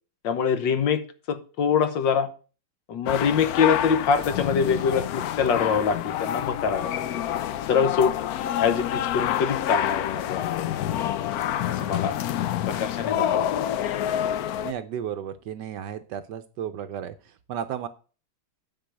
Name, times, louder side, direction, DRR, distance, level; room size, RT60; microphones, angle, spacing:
voice 1, 0.2-2.3 2.9-7.0 7.7-8.1 8.6-10.6 11.7-12.1 12.6-13.5, left 6 dB, 70° left, 10 dB, 1.6 m, -24 dB
sound 1, 3.1-14.7, left 11 dB, 90° left, 0.8 m, -27 dB
voice 2, 14.6-17.9, right 9 dB, 70° right, 10 dB, 1.1 m, -34 dB
9.1 x 4.7 x 7.6 m, 0.37 s
omnidirectional pair, 2.2 m